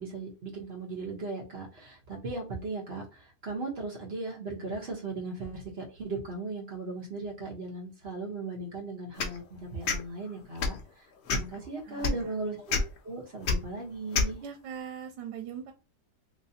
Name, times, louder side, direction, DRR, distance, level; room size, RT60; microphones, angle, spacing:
voice 1, 0.0-11.0 11.3-14.4, right 3 dB, 45° right, -1 dB, 1.0 m, -37 dB
sound 1, 9.2-9.4 9.8-10.0 10.6-10.8 11.3-11.6 12.0-12.1 12.7-12.8 13.4-13.6 14.1-14.3, left 4 dB, 85° left, 0.5 m, -26 dB
voice 2, 11.9-12.3 14.4-15.7, right 8 dB, 80° right, 5 dB, 1.3 m, -40 dB
3.1 x 3.0 x 2.7 m, 0.31 s
omnidirectional pair, 1.9 m